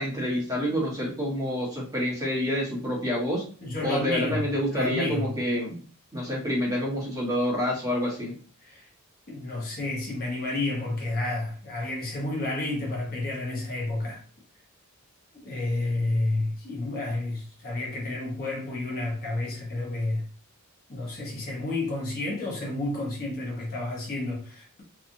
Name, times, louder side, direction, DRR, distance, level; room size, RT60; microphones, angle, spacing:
voice 1, 0.0-3.4 3.8-5.8 6.1-8.4, equal, 15° right, 1.1 m, -28 dB
voice 2, 3.6-5.3 8.6-8.9 9.3-14.2 15.4-20.3 20.9-24.8, left 2 dB, 40° left, 0.8 m, -30 dB
2.8 x 2.4 x 2.6 m
head